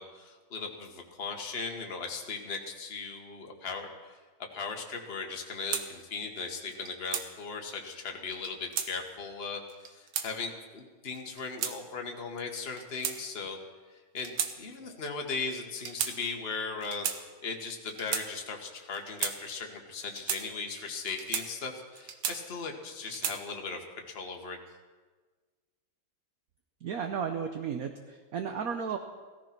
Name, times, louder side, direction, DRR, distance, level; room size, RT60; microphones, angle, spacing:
voice 1, 0.0-4.1 4.5-13.6 14.1-17.1 17.4-24.6, left 4 dB, 30° left, 2 dB, 1.7 m, -38 dB
sound 1, 5.7-5.9 6.7-7.3 8.3-8.9 9.7-10.3 11.2-11.8 12.6-13.5 14.2-14.5 14.8-15.0 15.8-16.1 16.8-17.2 17.9-18.3 18.9-19.4 20.0-20.4 21.1-21.5 22.0-22.6 23.0-23.4, right 8 dB, 90° right, 1.9 m, -34 dB
voice 2, 26.8-29.0, right 7 dB, 55° right, 6 dB, 1.1 m, -34 dB
17.0 x 14.0 x 6.0 m, 1.4 s
omnidirectional pair, 2.2 m